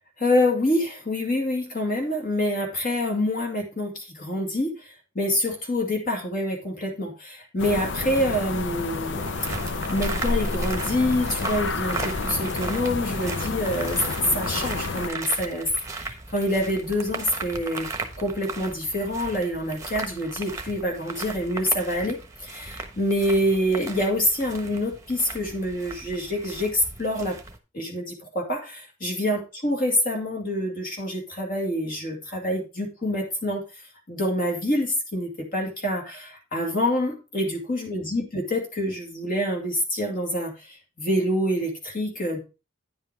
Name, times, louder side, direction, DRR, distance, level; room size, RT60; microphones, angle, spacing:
voice 1, 0.2-9.3 9.9-14.0 14.3-17.9 18.2-27.4 27.7-42.4, left 1 dB, 40° left, 1 dB, 2.3 m, -26 dB
sound 1, 7.6-15.1, left 3 dB, 60° left, 0.7 m, -30 dB
sound 2, 9.2-27.6, right 3 dB, 15° right, 1.1 m, -36 dB
10.0 x 5.6 x 4.6 m, 0.30 s
head